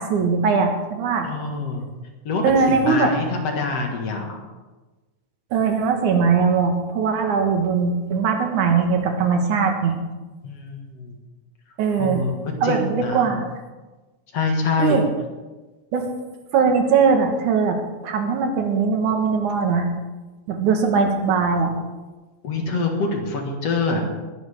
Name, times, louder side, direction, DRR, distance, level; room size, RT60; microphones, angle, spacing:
voice 1, 0.0-1.3 2.4-3.1 5.5-10.0 11.8-12.3 12.6-13.5 14.8-15.0 15.9-16.1 16.5-19.9 20.5-21.7, right 5 dB, 90° right, 4 dB, 3.0 m, -20 dB
voice 2, 1.2-1.9 2.2-4.4 10.4-11.2 12.0-13.3 14.3-15.0 22.4-24.0, left 3 dB, 60° left, 2 dB, 2.7 m, -25 dB
20.5 x 11.0 x 3.6 m, 1.2 s
omnidirectional pair, 3.4 m